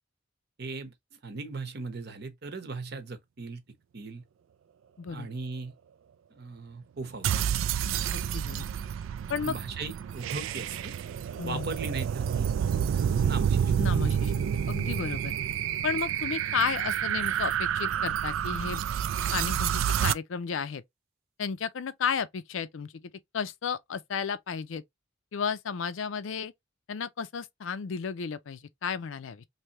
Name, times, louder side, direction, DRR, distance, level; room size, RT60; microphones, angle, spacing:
voice 1, 0.6-0.9 1.2-3.6 3.9-4.2 5.1-5.7 6.3-7.5 9.4-11.0 11.4-12.5 12.9-13.7, right 3 dB, 55° right, 0.8 m, -38 dB
voice 2, 5.0-5.3 8.1-8.7 9.3-9.5 11.4-11.8 13.8-15.4 15.8-18.8 19.3-20.8 21.4-22.9 23.3-24.8 25.3-26.5 26.9-29.5, left 6 dB, 80° left, 0.5 m, -33 dB
sound 1, 7.2-20.1, right 8 dB, 85° right, 0.3 m, -29 dB
3.3 x 2.7 x 2.9 m
head